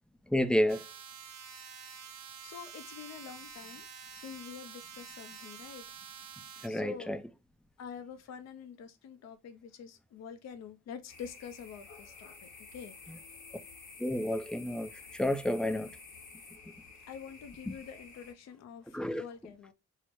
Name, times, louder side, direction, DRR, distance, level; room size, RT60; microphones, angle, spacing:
voice 1, 0.3-0.8 6.6-7.2 14.0-16.0 17.7-17.8 18.9-19.2, left 1 dB, 5° left, 0.5 m, -30 dB
sound 1, 0.7-6.7, right 7 dB, 60° right, 0.7 m, -48 dB
voice 2, 2.4-3.8 4.1-5.8 6.7-7.1 7.8-12.9 17.1-19.7, left 7 dB, 60° left, 0.6 m, -46 dB
sound 2, 11.1-18.3, left 4 dB, 75° left, 1.5 m, -51 dB
4.8 x 2.0 x 4.4 m
cardioid pair, 90°, 30 cm